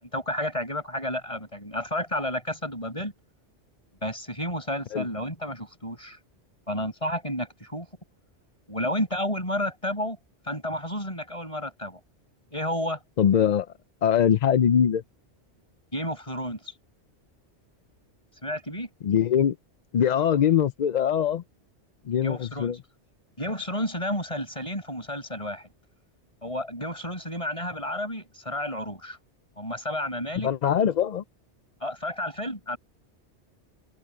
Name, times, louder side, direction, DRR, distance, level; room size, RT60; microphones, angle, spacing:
voice 1, 0.0-3.1 4.0-6.2 6.7-7.9 8.7-10.2 10.5-12.0 12.5-13.0 15.9-16.7 18.4-18.9 22.2-22.8 23.4-25.7 26.4-29.2 29.6-30.5 31.8-32.8, left 1 dB, 30° left, 6.8 m, -31 dB
voice 2, 13.2-13.7 14.0-15.0 19.0-19.6 19.9-21.4 22.1-22.8 30.4-31.2, left 8 dB, 55° left, 0.5 m, -22 dB
omnidirectional pair, 1.2 m